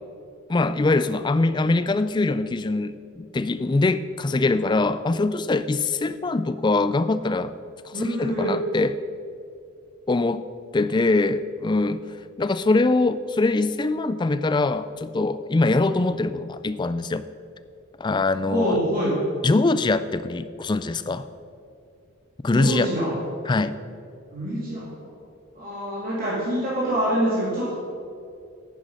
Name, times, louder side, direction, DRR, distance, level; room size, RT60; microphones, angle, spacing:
voice 1, 0.5-7.5 7.8-9.0 10.1-10.5 10.7-12.0 12.4-17.3 18.0-18.8 19.4-21.3 22.4-22.9 23.5-23.8, left 3 dB, 20° left, 13 dB, 0.3 m, -23 dB
voice 2, 7.9-8.5 18.5-19.1 22.5-23.1 24.3-24.8 25.5-27.7, right 1 dB, 40° right, -8 dB, 2.7 m, -25 dB
10.5 x 10.0 x 5.5 m, 2.5 s
head